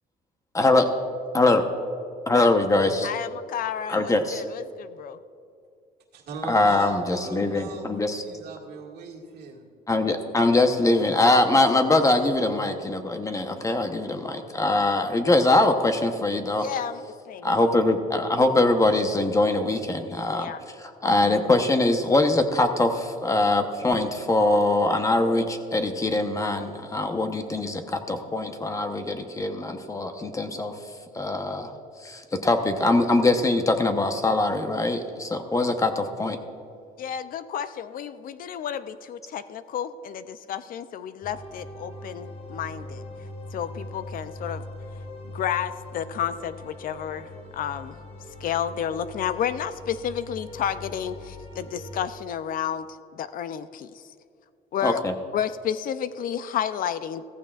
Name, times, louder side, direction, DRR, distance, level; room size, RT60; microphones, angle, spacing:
voice 1, 0.5-0.9 1.3-1.6 2.3-3.1 3.9-4.4 6.5-8.2 9.9-16.6 17.4-20.5 20.8-30.7 31.1-31.7 32.0-36.4 54.8-55.1, left 2 dB, 20° left, 6 dB, 0.9 m, -22 dB
voice 2, 3.0-5.2 16.6-17.5 20.3-20.6 37.0-43.0 43.5-44.6 45.3-48.0 48.4-52.9 53.1-54.0 54.7-55.0 55.3-57.2, left 9 dB, 55° left, 13 dB, 0.5 m, -31 dB
voice 3, 6.1-9.7, right 5 dB, 75° right, -1 dB, 2.0 m, -39 dB
sound 1, 41.2-52.1, left 1 dB, 35° left, 2.0 m, -41 dB
15.5 x 14.5 x 2.4 m, 2.4 s
cardioid pair, 110°, 17 cm